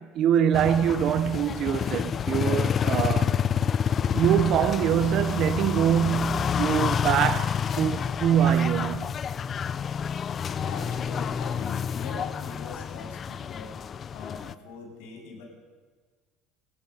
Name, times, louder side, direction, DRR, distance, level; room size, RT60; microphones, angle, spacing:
voice 1, 0.0-3.4 4.1-9.2, right 10 dB, 45° right, 0.8 m, -24 dB
sound 1, 0.5-14.5, left 7 dB, 30° left, 0.5 m, -28 dB
voice 2, 9.9-15.4, left 4 dB, 90° left, 7.7 m, -42 dB
29.5 x 16.5 x 5.5 m
cardioid pair, 150°, 0 cm